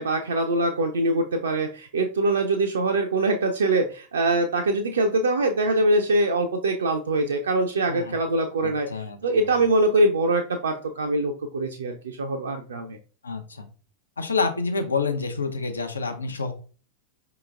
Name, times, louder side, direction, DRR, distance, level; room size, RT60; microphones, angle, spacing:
voice 1, 0.0-13.0, right 2 dB, 65° right, 4 dB, 0.4 m, -23 dB
voice 2, 8.6-9.6 13.2-13.7 14.2-16.5, left 4 dB, 75° left, 7 dB, 0.6 m, -28 dB
4.8 x 2.9 x 2.4 m, 0.38 s
figure-of-eight pair, 90°, 0 cm